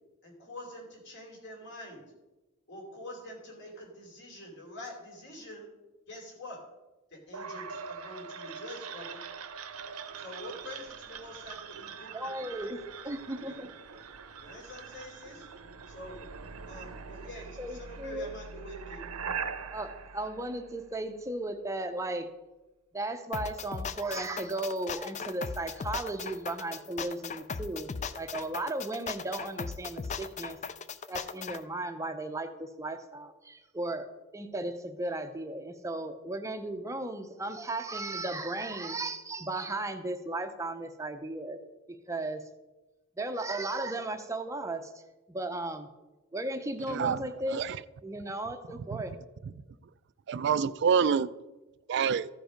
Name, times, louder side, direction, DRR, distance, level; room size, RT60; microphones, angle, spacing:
voice 1, 0.2-2.0 2.7-5.7 6.1-6.6 7.1-9.2 10.2-12.3 12.6-12.8 13.5-13.6 14.4-15.5 15.9-16.2 16.7-19.1 19.4-19.5, left 1 dB, 55° left, 0 dB, 2.9 m, -45 dB
sound 1, 7.3-21.2, right 6 dB, 85° right, 0.8 m, -43 dB
voice 2, 12.1-12.8 13.0-13.7 16.9-17.0 17.6-18.3 19.7-22.3 22.9-30.6 31.1-34.1 34.3-41.6 41.9-42.4 43.2-45.0 45.3-45.9 46.3-47.6 48.0-49.1, right 2 dB, 15° right, 7 dB, 0.6 m, -35 dB
sound 2, 23.3-31.6, left 5 dB, 30° left, 0.3 m, -38 dB
voice 3, 46.9-47.2 47.5-47.8 48.9-49.0 50.3-51.3 51.9-52.3, right 6 dB, 55° right, 16 dB, 0.3 m, -26 dB
14.5 x 5.0 x 5.1 m, 1.1 s
head